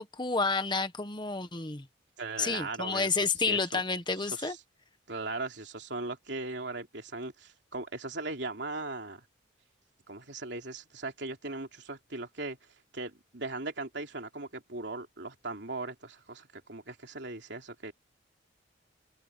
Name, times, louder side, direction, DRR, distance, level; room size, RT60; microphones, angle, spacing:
voice 1, 0.0-1.9 2.4-4.6, left 4 dB, 25° left, 1.3 m, -30 dB
voice 2, 2.2-3.1 3.5-3.8 4.2-4.6 5.1-9.2 10.1-12.6 12.9-17.9, right 3 dB, 65° right, 3.3 m, -38 dB
head